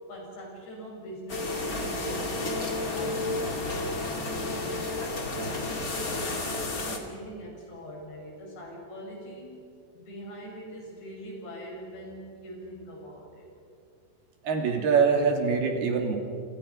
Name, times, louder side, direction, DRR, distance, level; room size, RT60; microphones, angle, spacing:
voice 1, 0.1-2.4 2.8-5.0 5.3-9.6 9.9-13.5, equal, 75° left, -1 dB, 8.6 m, -42 dB
sound 1, 1.3-7.0, left 2 dB, 30° left, 2.0 m, -31 dB
voice 2, 14.4-16.2, right 5 dB, 65° right, 3 dB, 4.5 m, -24 dB
28.0 x 28.0 x 5.7 m, 2.4 s
omnidirectional pair, 4.9 m